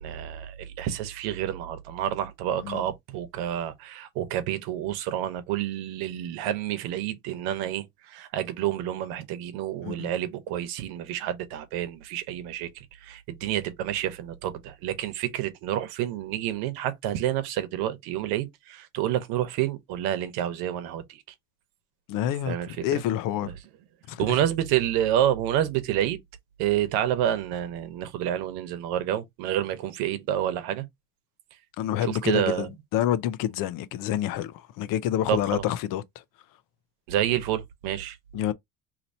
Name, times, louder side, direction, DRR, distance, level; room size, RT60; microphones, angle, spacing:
voice 1, 0.0-21.2 22.5-23.0 23.4-23.5 24.2-26.2 26.6-30.8 32.0-32.7 35.3-35.6 37.1-38.2, right 11 dB, 85° right, 1.0 m, -29 dB
voice 2, 22.1-23.5 24.1-24.4 31.8-36.0 38.3-38.5, left 11 dB, 65° left, 0.6 m, -28 dB
2.9 x 2.6 x 4.2 m
cardioid pair, 130°, 36 cm